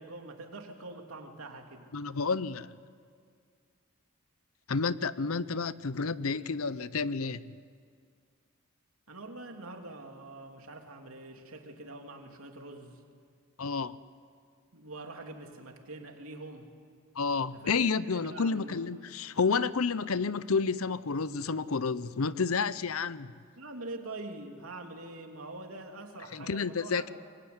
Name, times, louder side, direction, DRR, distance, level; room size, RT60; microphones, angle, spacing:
voice 1, 0.0-1.9 9.1-13.0 14.7-16.7 17.5-18.8 23.6-27.1, right 2 dB, 85° right, 2.9 m, -44 dB
voice 2, 1.9-2.7 4.7-7.4 13.6-14.0 17.2-23.3 26.3-27.1, left 5 dB, 85° left, 0.7 m, -30 dB
25.0 x 22.0 x 9.6 m
head